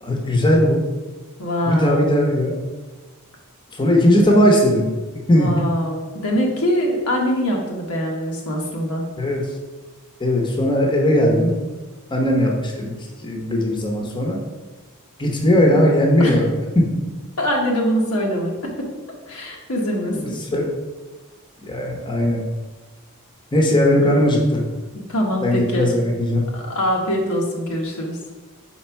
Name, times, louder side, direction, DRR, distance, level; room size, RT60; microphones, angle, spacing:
voice 1, 0.0-0.8 1.7-2.5 3.7-4.9 5.3-5.5 9.2-9.5 10.2-11.6 12.1-12.9 13.2-14.4 15.2-16.9 20.1-20.7 21.6-22.4 23.5-24.6 25.4-26.5, left 1 dB, 20° left, -1 dB, 0.9 m, -18 dB
voice 2, 1.4-2.1 5.3-9.0 16.2-16.4 17.4-18.9 19.3-20.3 24.9-25.9 26.5-28.2, equal, 90° left, -1 dB, 1.2 m, -23 dB
4.7 x 4.3 x 4.6 m, 1.2 s
head